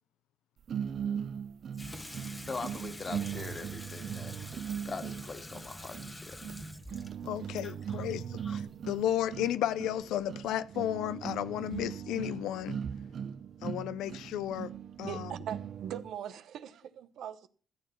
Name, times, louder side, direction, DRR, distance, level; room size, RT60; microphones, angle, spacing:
sound 1, 0.7-16.1, right 8 dB, 55° right, 0.5 m, -39 dB
Water tap faucet / Sink (filling or washing), 1.7-8.8, left 1 dB, 15° left, 1.3 m, -47 dB
voice 1, 2.5-6.4 7.6-8.1 8.4-8.6, left 4 dB, 35° left, 1.9 m, -43 dB
voice 2, 7.2-12.8 13.6-14.7 15.0-15.3, left 11 dB, 90° left, 0.6 m, -33 dB
voice 3, 15.1-17.5, right 10 dB, 75° right, 1.0 m, -41 dB
14.5 x 7.0 x 6.0 m
cardioid pair, 90°, 0 cm